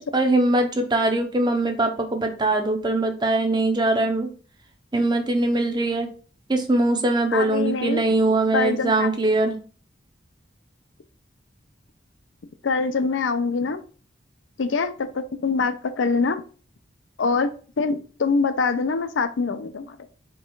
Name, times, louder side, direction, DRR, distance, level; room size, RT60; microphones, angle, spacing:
voice 1, 0.0-4.3 4.9-6.1 6.5-9.6, right 2 dB, 25° right, 4 dB, 0.6 m, -22 dB
voice 2, 7.3-8.0 8.5-9.1 12.6-13.8 14.6-16.4 17.2-20.0, left 4 dB, 90° left, 10 dB, 0.5 m, -24 dB
4.6 x 2.4 x 4.5 m, 0.39 s
head